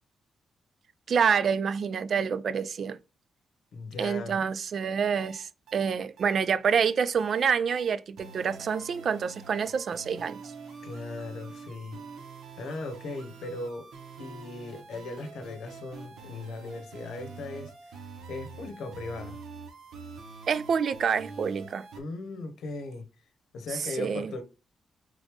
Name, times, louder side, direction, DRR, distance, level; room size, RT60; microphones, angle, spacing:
voice 1, 1.1-3.0 4.0-10.4 20.5-21.9 23.7-24.3, right 6 dB, 60° right, 0.4 m, -27 dB
voice 2, 3.7-4.4 10.8-12.0 12.6-13.9 14.2-19.4 22.0-23.1 23.5-24.4, left 3 dB, 80° left, 0.9 m, -38 dB
sound 1, 5.2-22.0, right 4 dB, 90° right, 1.2 m, -46 dB
3.7 x 3.2 x 3.4 m
cardioid pair, 90°, 0 cm